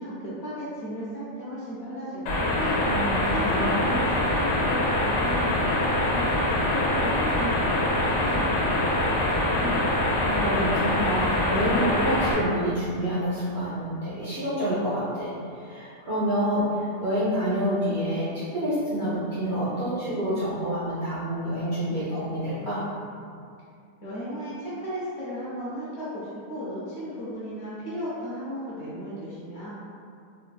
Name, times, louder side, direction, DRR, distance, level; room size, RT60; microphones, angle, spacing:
voice 1, 0.0-2.8 3.3-9.9 24.0-29.7, equal, 65° left, -10 dB, 0.7 m, -35 dB
sound 1, 2.3-12.3, left 1 dB, 85° left, 1.2 m, -24 dB
voice 2, 2.8-3.7 10.2-22.8, equal, 60° right, -10 dB, 0.7 m, -28 dB
3.2 x 2.2 x 2.2 m, 2.4 s
omnidirectional pair, 1.7 m